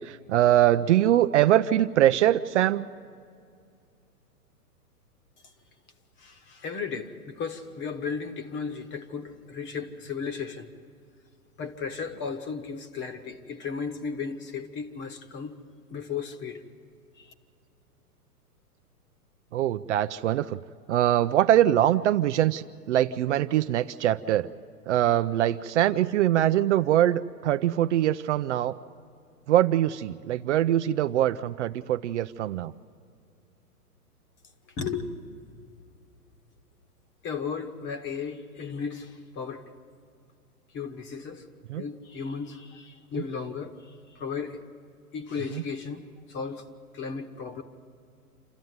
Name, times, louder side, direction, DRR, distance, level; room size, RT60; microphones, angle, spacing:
voice 1, 0.0-2.9 19.5-20.6 20.9-24.5 24.9-28.8 29.5-32.7 41.7-41.8 45.5-45.6, right 12 dB, 50° right, 0.6 m, -23 dB
voice 2, 6.2-10.7 11.6-15.6 15.9-16.6 17.2-17.3 34.8-35.7 37.2-39.6 40.7-41.5 41.7-44.6 45.1-46.7 46.9-47.6, left 5 dB, 25° left, 1.3 m, -35 dB
27.5 x 13.0 x 9.5 m
hypercardioid pair, 125°, 46 cm